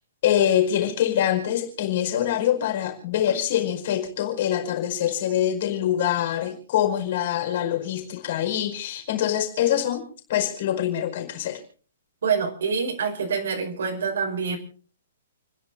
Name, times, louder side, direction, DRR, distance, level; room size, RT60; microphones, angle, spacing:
voice 1, 0.2-11.6, left 11 dB, 40° left, 5.0 m, -24 dB
voice 2, 12.2-14.6, right 6 dB, 70° right, 5.3 m, -26 dB
30.0 x 11.0 x 4.0 m
hypercardioid pair, 175°, 0 cm